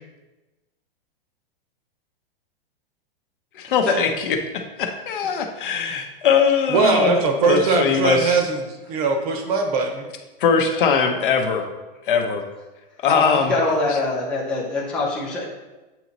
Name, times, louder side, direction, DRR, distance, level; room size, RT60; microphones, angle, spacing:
voice 1, 3.5-8.4 10.4-11.7 12.0-12.4 13.0-13.5, left 6 dB, 60° left, 4 dB, 0.8 m, -21 dB
voice 2, 6.7-8.6 8.9-10.1, right 4 dB, 40° right, 4 dB, 0.8 m, -20 dB
voice 3, 13.5-15.4, left 3 dB, 5° left, -7 dB, 0.5 m, -23 dB
7.9 x 3.0 x 3.9 m, 1.1 s
supercardioid pair, 170°, 30 cm